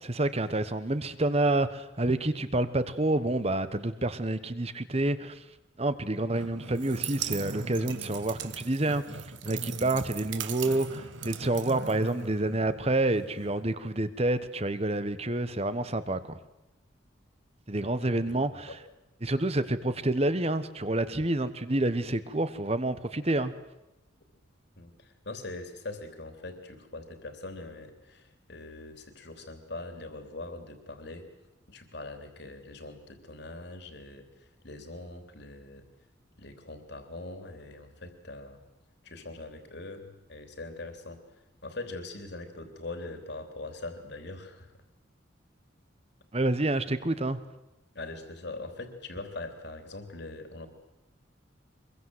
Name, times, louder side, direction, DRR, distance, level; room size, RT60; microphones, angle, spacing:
voice 1, 0.0-5.4 5.8-9.0 9.4-16.4 17.7-18.7 19.2-23.5 46.3-47.4, right 2 dB, 30° right, 12 dB, 1.2 m, -28 dB
Growling, 6.3-13.6, right 1 dB, 90° right, 2.5 m, -42 dB
sound 1, 6.7-12.5, right 12 dB, 65° right, 1.2 m, -40 dB
voice 2, 24.8-31.3 31.7-35.8 36.4-38.6 39.0-44.7 48.0-50.7, left 2 dB, 60° left, 6 dB, 3.4 m, -42 dB
24.5 x 22.5 x 8.0 m, 0.95 s
head